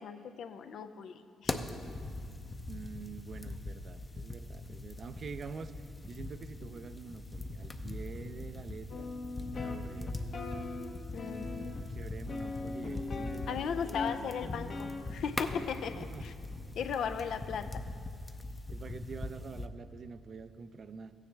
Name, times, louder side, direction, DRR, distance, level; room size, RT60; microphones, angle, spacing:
voice 1, 0.0-1.5 11.1-11.7 13.5-16.3 16.8-17.9, left 7 dB, 70° left, 9 dB, 0.5 m, -37 dB
sound 1, 1.5-19.7, left 2 dB, 20° left, 0.6 m, -41 dB
voice 2, 2.7-9.1 9.5-10.2 11.3-14.3 15.9-16.3 18.7-21.1, right 5 dB, 50° right, 11 dB, 0.4 m, -46 dB
sound 2, 8.9-11.9 12.3-15.0 15.5-15.6, left 3 dB, 55° left, 0.9 m, -40 dB
14.5 x 9.7 x 3.3 m, 2.4 s
cardioid pair, 90°, 0 cm